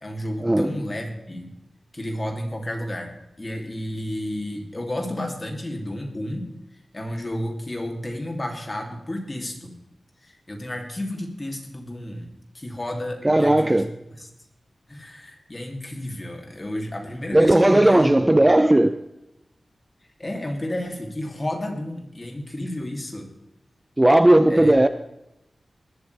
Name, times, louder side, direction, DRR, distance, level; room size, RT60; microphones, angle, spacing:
voice 1, 0.0-1.5 1.9-3.1 3.4-6.5 6.9-9.7 10.2-13.8 14.2-14.3 14.9-18.5 20.2-23.3 24.5-24.8, left 1 dB, 25° left, 2 dB, 3.0 m, -32 dB
voice 2, 13.2-13.9 17.3-19.0 24.0-24.9, right 1 dB, 15° right, 11 dB, 0.6 m, -16 dB
20.5 x 12.5 x 3.4 m, 0.88 s
wide cardioid pair, 115°, 0 cm